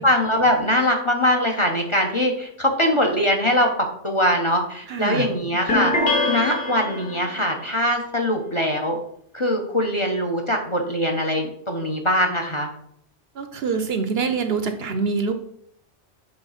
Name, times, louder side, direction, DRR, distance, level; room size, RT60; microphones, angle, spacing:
voice 1, 0.0-3.7 4.0-5.9 6.2-9.0 9.3-12.7, equal, 25° left, 2 dB, 0.9 m, -22 dB
voice 2, 4.9-5.3 13.4-15.3, right 5 dB, 60° right, 8 dB, 0.9 m, -25 dB
sound 1, 5.7-7.4, left 2 dB, 50° left, 1.6 m, -23 dB
7.9 x 3.7 x 5.7 m, 0.70 s
omnidirectional pair, 1.2 m